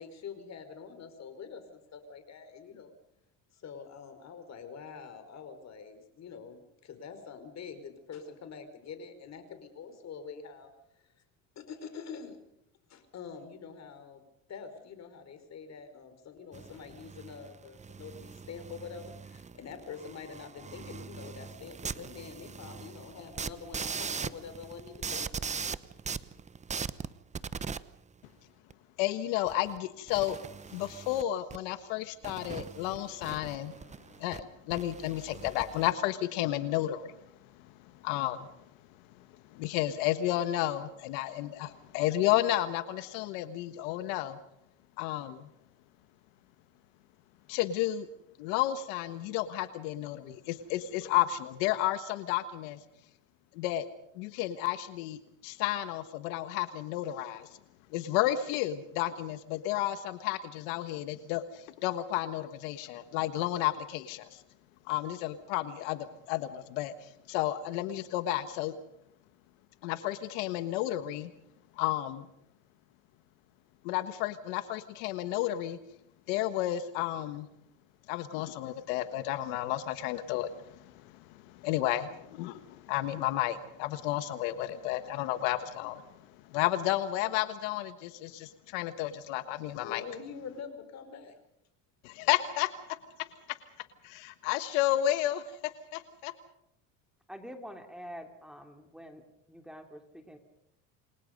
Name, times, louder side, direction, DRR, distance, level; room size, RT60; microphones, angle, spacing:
voice 1, 0.0-2.9 3.5-10.7 11.0-11.1 11.5-12.4 12.9-25.5 89.8-91.4, left 6 dB, 45° left, 8 dB, 5.1 m, -45 dB
sound 1, 16.5-27.8 28.7-28.8 29.5-29.8 30.1-31.2 31.5-31.6 32.2-34.4 34.7-35.9, right 6 dB, 20° right, 0.9 m, -41 dB
voice 2, 29.0-30.4 30.7-33.7 34.2-37.1 38.0-38.5 39.5-44.4 45.0-45.5 47.5-48.1 48.4-52.8 53.5-53.9 54.2-57.5 57.9-64.4 64.9-68.7 69.8-71.3 71.8-72.3 73.8-75.8 76.3-77.5 78.1-86.1 86.5-90.0 92.0-93.0 94.0-96.3, left 14 dB, 80° left, 11 dB, 1.5 m, -32 dB
voice 3, 97.3-99.2 99.5-100.4, equal, ahead, 5 dB, 3.3 m, -46 dB
28.5 x 23.5 x 5.3 m, 0.79 s
supercardioid pair, 110°, 38 cm